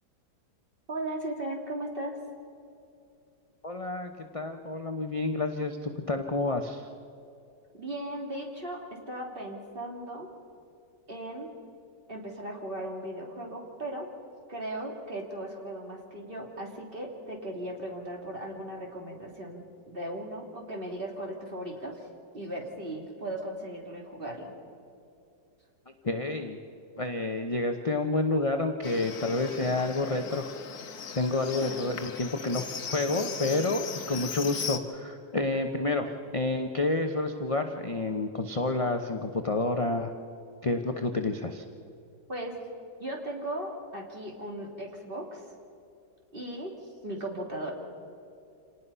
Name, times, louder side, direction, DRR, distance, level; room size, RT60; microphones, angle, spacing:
voice 1, 0.9-2.2 7.8-8.8 9.1-10.3 11.1-11.5 12.1-14.1 14.5-22.1 22.3-24.5 31.6-31.8 42.3-42.6 43.0-45.4 46.3-47.7, right 1 dB, 30° right, 0 dB, 3.0 m, -37 dB
voice 2, 3.6-6.9 26.0-26.6 27.0-30.5 31.1-40.1 40.6-41.6, left 2 dB, 30° left, 5 dB, 0.6 m, -29 dB
Livestock farm animals working animals, 28.8-34.8, left 7 dB, 60° left, 1.7 m, -38 dB
27.5 x 19.0 x 5.6 m, 2.6 s
omnidirectional pair, 2.0 m